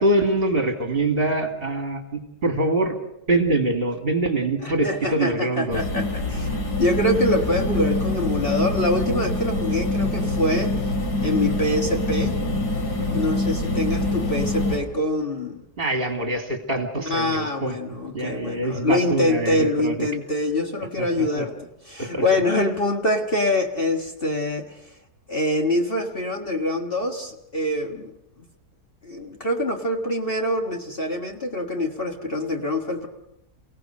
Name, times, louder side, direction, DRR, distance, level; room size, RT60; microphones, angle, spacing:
voice 1, 0.0-3.0 3.3-5.8 15.8-20.0 21.0-21.4 22.0-22.2, right 2 dB, 35° right, 4 dB, 2.8 m, -24 dB
voice 2, 4.6-6.5 6.8-10.8 11.2-12.4 13.1-15.6 17.0-24.9 25.3-28.1 29.0-33.1, left 1 dB, 35° left, 2 dB, 1.7 m, -25 dB
sound 1, 5.7-14.8, left 2 dB, 85° left, 3.6 m, -25 dB
29.5 x 17.5 x 6.5 m, 0.84 s
omnidirectional pair, 1.7 m